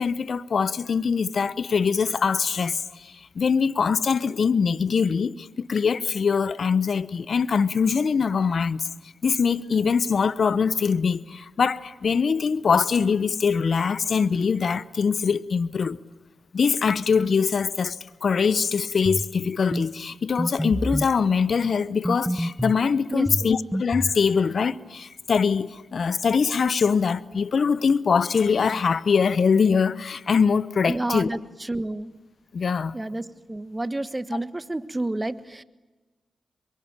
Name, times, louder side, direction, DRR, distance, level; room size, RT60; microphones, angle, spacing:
voice 1, 0.0-8.9 9.2-16.0 16.5-31.4 32.5-32.9, left 5 dB, 65° left, 1.0 m, -23 dB
sound 1, 19.1-19.3 19.7-19.9 20.4-21.1 22.1-22.8 23.3-24.2, equal, ahead, 1.2 m, -27 dB
voice 2, 23.1-23.5 30.9-31.4 31.7-32.1 32.9-35.6, right 2 dB, 25° right, 1.6 m, -30 dB
27.0 x 23.5 x 9.0 m
supercardioid pair, 40°, 0 cm